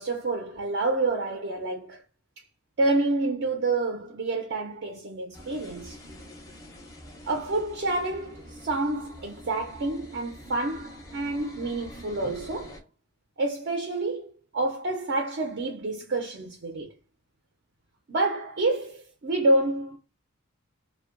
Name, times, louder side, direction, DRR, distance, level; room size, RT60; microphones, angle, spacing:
voice 1, 0.0-2.0 2.8-6.0 7.3-12.8 13.4-16.9 18.1-20.0, right 2 dB, 50° right, 0.4 m, -28 dB
sound 1, 5.3-12.8, left 1 dB, 15° left, 0.5 m, -46 dB
2.5 x 2.2 x 2.4 m
head